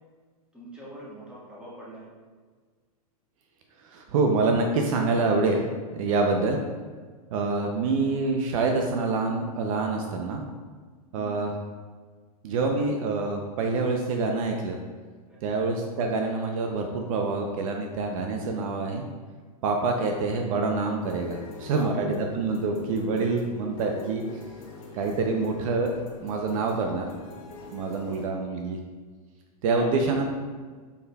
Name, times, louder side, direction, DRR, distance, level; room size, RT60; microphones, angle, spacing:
voice 1, 0.5-2.1 11.1-11.4 15.3-15.6 21.6-22.0 29.7-29.9, equal, 5° right, -7 dB, 1.4 m, -42 dB
voice 2, 3.9-5.7 5.9-6.6 7.3-10.4 11.1-11.5 12.4-14.8 15.4-19.1 19.6-24.2 24.9-25.9 26.2-27.1 27.7-28.8 29.6-30.2, right 3 dB, 60° right, 3 dB, 0.6 m, -26 dB
sound 1, 21.0-28.3, left 2 dB, 60° left, 1.1 m, -44 dB
4.9 x 4.6 x 2.3 m, 1.5 s
hypercardioid pair, 125°, 19 cm